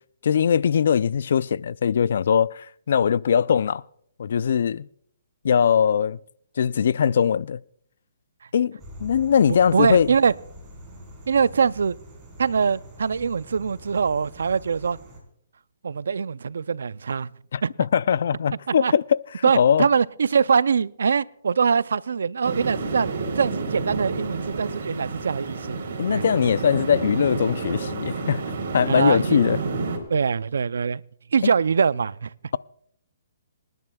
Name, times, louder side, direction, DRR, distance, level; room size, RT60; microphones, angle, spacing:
voice 1, 0.2-3.8 4.2-4.9 5.4-6.2 6.6-7.6 8.5-10.1 17.5-19.2 19.5-19.9 26.0-28.4 28.7-29.6 31.4-31.5, left 7 dB, 65° left, 0.4 m, -21 dB
sound 1, 8.8-15.2, equal, 15° right, 4.2 m, -44 dB
voice 2, 9.5-10.3 11.3-12.0 12.4-15.0 15.8-17.3 17.6-17.7 18.7-18.9 19.4-25.8 26.1-26.2 28.9-29.4 30.1-31.0 31.3-32.3, right 6 dB, 80° right, 0.4 m, -23 dB
sound 2, 22.4-30.0, right 3 dB, 55° right, 3.7 m, -29 dB
26.5 x 10.5 x 2.3 m
hypercardioid pair, 155°, 0 cm